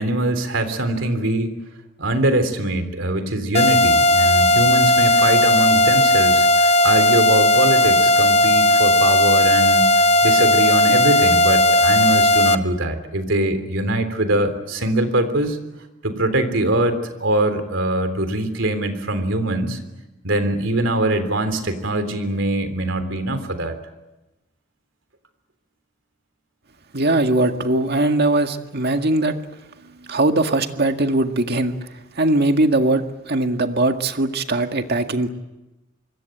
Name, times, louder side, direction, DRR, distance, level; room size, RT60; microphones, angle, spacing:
voice 1, 0.0-1.5 2.0-15.6 16.0-19.8 20.2-23.7 29.8-30.2, right 1 dB, 70° right, 9 dB, 3.5 m, -22 dB
sound 1, 3.5-12.6, left 1 dB, 35° left, 1.0 m, -15 dB
voice 2, 26.9-29.4 30.1-31.8 32.2-35.3, right 2 dB, 55° right, 6 dB, 1.9 m, -20 dB
26.0 x 22.5 x 9.1 m, 1.0 s
head